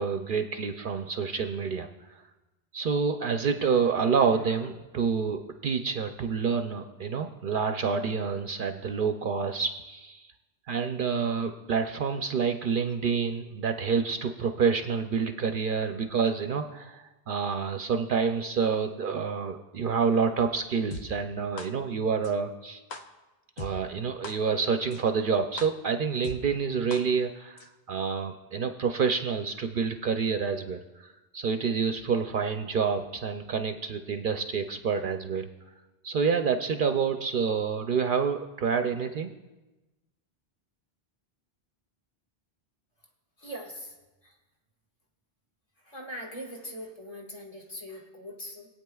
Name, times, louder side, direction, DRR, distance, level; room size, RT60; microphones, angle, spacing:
voice 1, 0.0-2.2 2.7-10.3 10.7-22.8 23.6-35.5 36.0-39.3, right 5 dB, 60° right, 6 dB, 0.7 m, -28 dB
sound 1, 20.9-21.0 21.6-21.7 22.2-22.3 22.9-23.0 23.6-23.7 24.2-24.3 24.9-25.0 25.6-25.7 26.2-26.4 26.9-27.0 27.6-27.7, left 3 dB, 80° left, 1.0 m, -38 dB
voice 2, 43.4-43.9 44.2-44.4 45.8-48.7, equal, 35° left, -2 dB, 1.6 m, -41 dB
21.5 x 8.6 x 2.3 m, 1.1 s
omnidirectional pair, 1.1 m